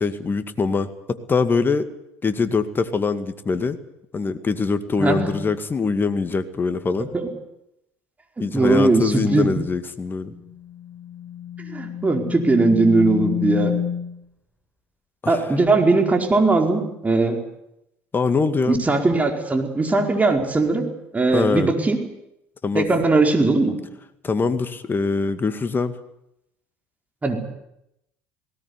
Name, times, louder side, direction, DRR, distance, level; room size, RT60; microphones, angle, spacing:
voice 1, 0.0-1.9 2.2-3.8 4.1-7.1 8.4-10.3 15.2-15.4 18.1-18.8 21.3-21.7 22.6-22.9 24.2-25.9, left 4 dB, 30° left, 10 dB, 2.2 m, -23 dB
voice 2, 5.0-5.3 7.1-7.3 8.5-9.5 11.7-13.7 15.3-17.4 18.7-20.8 21.1-22.0 22.7-23.7 27.2-27.4, right 3 dB, 20° right, 3 dB, 4.9 m, -19 dB
sound 1, 10.3-14.2, left 10 dB, 10° left, 4.5 m, -29 dB
19.0 x 18.0 x 9.9 m, 0.83 s
hypercardioid pair, 65°, 7 cm